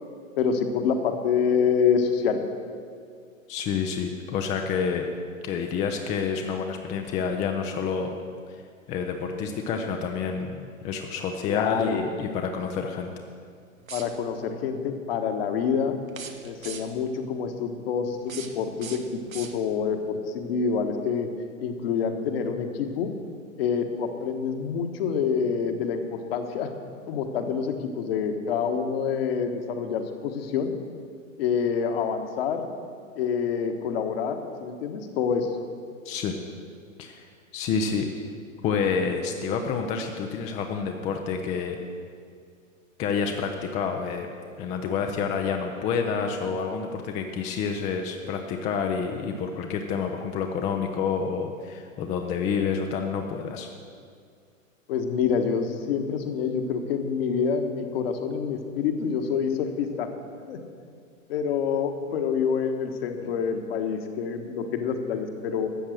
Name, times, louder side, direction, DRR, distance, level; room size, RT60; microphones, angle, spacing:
voice 1, 0.4-2.4 11.5-12.0 13.9-16.0 16.4-21.3 21.6-23.1 23.6-26.7 27.1-30.7 31.4-32.7 33.1-35.5 54.9-60.1 60.5-60.6 61.3-65.7, left 6 dB, 45° left, 6 dB, 1.4 m, -27 dB
voice 2, 3.5-5.1 5.4-8.1 8.5-8.6 8.9-13.1 36.0-36.3 37.0-38.1 38.6-41.8 43.0-44.3 44.6-53.7, left 6 dB, 15° left, 4 dB, 0.6 m, -28 dB
sound 1, 13.8-14.5 16.0-17.1 18.1-19.9, right 5 dB, 80° right, 1.2 m, -42 dB
13.0 x 8.5 x 6.4 m, 2.2 s
figure-of-eight pair, 105°, 40 cm